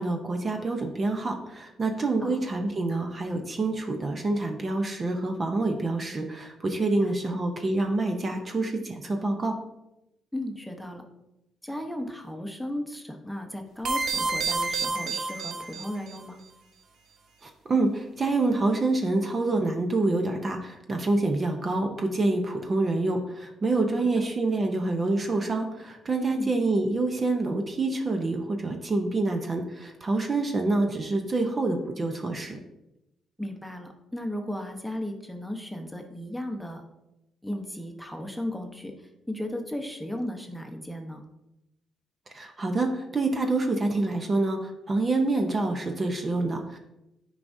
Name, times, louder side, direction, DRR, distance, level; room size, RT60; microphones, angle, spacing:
voice 1, 0.0-9.6 17.4-32.6 42.3-46.8, right 2 dB, 35° right, 4 dB, 0.8 m, -27 dB
voice 2, 7.0-7.4 10.3-11.0 11.6-16.4 24.0-24.3 26.3-26.5 33.4-36.8 37.4-41.2, left 1 dB, ahead, 3 dB, 0.9 m, -35 dB
sound 1, 13.8-16.2, right 4 dB, 70° right, 0.9 m, -29 dB
9.1 x 4.8 x 2.7 m, 0.90 s
cardioid pair, 90°, 0 cm